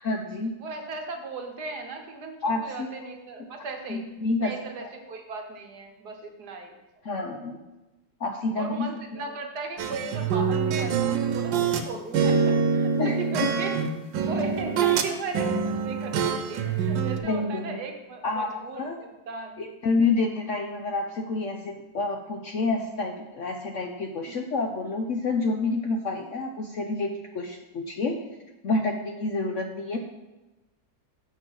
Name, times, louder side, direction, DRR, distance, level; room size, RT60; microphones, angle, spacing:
voice 1, 0.0-0.6 2.4-2.9 3.9-4.5 4.8-4.9 7.0-7.6 8.2-9.3 13.0-13.2 17.2-17.8 18.2-19.0 19.6-28.2 28.6-30.0, left 3 dB, 60° left, 3 dB, 0.8 m, -28 dB
voice 2, 0.6-4.0 4.4-6.8 8.5-13.7 14.1-19.6 24.3-24.4, right 4 dB, 65° right, 4 dB, 1.6 m, -37 dB
sound 1, 9.8-11.9 12.1-15.1 15.3-17.2, right 6 dB, 90° right, 1.5 m, -25 dB
7.0 x 6.1 x 6.3 m, 1.1 s
omnidirectional pair, 1.9 m